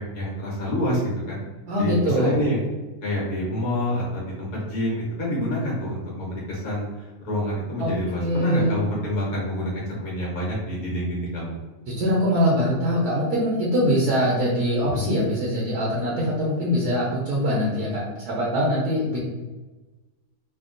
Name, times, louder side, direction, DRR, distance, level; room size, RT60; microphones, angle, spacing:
voice 1, 0.1-1.4 1.8-2.6 3.0-11.6, equal, 70° left, -4 dB, 1.5 m, -27 dB
voice 2, 1.7-2.3 7.8-7.9 8.2-8.7 11.9-19.2, equal, 80° right, -5 dB, 1.3 m, -23 dB
3.4 x 2.3 x 2.5 m, 1.2 s
omnidirectional pair, 1.6 m